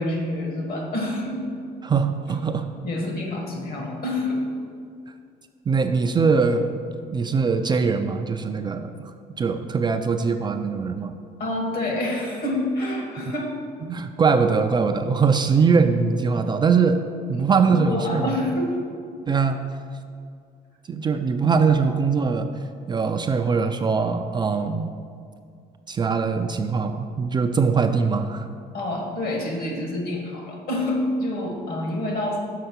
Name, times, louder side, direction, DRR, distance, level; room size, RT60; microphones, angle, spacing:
voice 1, 0.0-1.5 2.3-2.4 2.8-4.4 11.4-13.5 17.3-18.8 28.7-32.4, left 1 dB, 60° left, 1 dB, 1.7 m, -27 dB
voice 2, 1.8-2.7 5.7-6.7 7.1-9.1 9.4-11.1 13.9-17.0 17.3-18.3 19.3-19.6 20.9-22.5 22.9-24.9 25.9-28.5, right 5 dB, 25° right, 6 dB, 0.3 m, -22 dB
6.6 x 4.6 x 5.9 m, 2.3 s
cardioid pair, 110°, 17 cm